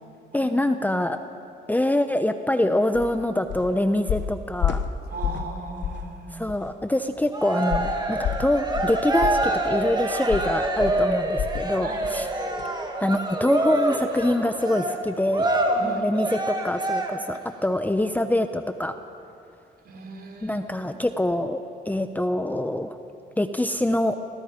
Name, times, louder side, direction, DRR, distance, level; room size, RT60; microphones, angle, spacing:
voice 1, 0.3-1.2 1.7-4.8 6.3-12.3 13.0-15.5 15.8-18.9 20.4-23.0 23.4-24.1, left 1 dB, 10° left, 8 dB, 0.9 m, -25 dB
sound 1, 2.9-3.1 3.5-3.7 4.1-5.5 5.8-6.1 6.5-6.6 7.7-11.7 12.0-12.2 12.6-12.7, left 8 dB, 65° left, 1.1 m, -29 dB
voice 2, 5.1-6.3 11.8-12.0 15.7-16.0 19.9-20.6, right 3 dB, 50° right, 3 dB, 3.8 m, -37 dB
Cheering, 7.3-17.4, right 2 dB, 20° right, 2.5 m, -26 dB
28.5 x 19.5 x 5.2 m, 2.6 s
cardioid pair, 90°, 20 cm